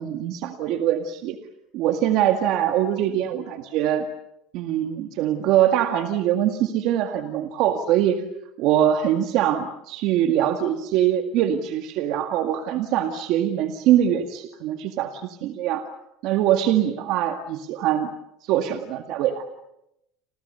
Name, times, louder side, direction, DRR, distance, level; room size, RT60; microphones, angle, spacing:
voice 1, 0.0-1.4 1.7-4.1 4.5-8.2 8.6-15.8 16.2-18.1 18.4-19.4, right 11 dB, 60° right, 6 dB, 1.9 m, -23 dB
30.0 x 26.5 x 6.9 m, 0.84 s
supercardioid pair, 130°, 0 cm